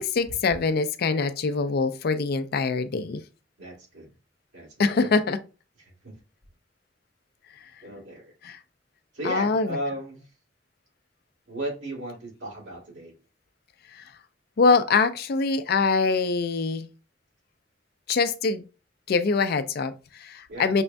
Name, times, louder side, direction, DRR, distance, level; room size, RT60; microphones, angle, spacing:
voice 1, 0.0-3.2 4.8-5.4 8.4-8.6 9.2-9.7 14.6-16.9 18.1-18.6 19.1-20.8, left 4 dB, 55° left, 0.4 m, -24 dB
voice 2, 3.6-4.1 4.5-5.2 5.9-6.1 7.8-8.3 9.1-10.3 11.5-13.1 20.5-20.7, right 1 dB, 75° right, 1.9 m, -35 dB
6.1 x 2.2 x 2.5 m
head